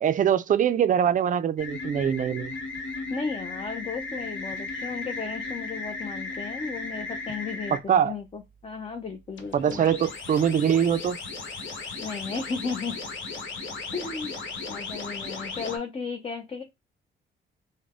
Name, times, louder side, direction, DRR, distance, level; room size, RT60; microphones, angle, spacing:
voice 1, 0.0-2.6 7.7-8.1 9.5-11.2, right 8 dB, 40° right, 0.4 m, -23 dB
sound 1, 1.6-7.8 9.3-15.8, left 3 dB, 70° left, 1.1 m, -36 dB
voice 2, 3.1-9.9 12.0-13.0 13.9-14.4 14.7-16.6, left 4 dB, 30° left, 0.6 m, -34 dB
3.8 x 2.1 x 3.5 m
cardioid pair, 90°, 20 cm